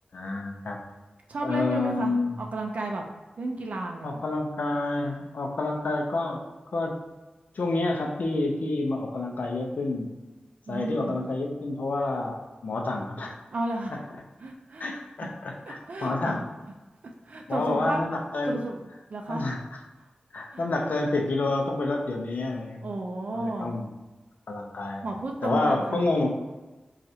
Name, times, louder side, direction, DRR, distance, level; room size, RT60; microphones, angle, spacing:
voice 1, 0.1-0.8 1.4-2.5 4.0-6.4 6.7-7.0 7.5-10.1 10.7-13.3 13.9-14.0 14.8-16.4 17.5-18.6 19.3-19.6 20.3-22.9 23.3-23.9 24.5-25.0 25.4-26.4, left 2 dB, 70° left, 1 dB, 0.5 m, -28 dB
voice 2, 1.3-3.0 3.4-4.2 10.7-11.2 13.5-14.0 14.4-14.9 15.2-15.4 15.7-16.5 17.2-18.0 18.5-18.8 19.1-19.5 20.5-20.6 22.8-23.8 25.0-26.0, right 2 dB, 60° right, 1 dB, 0.4 m, -33 dB
4.1 x 2.4 x 2.7 m, 1.2 s
wide cardioid pair, 90°, 3 cm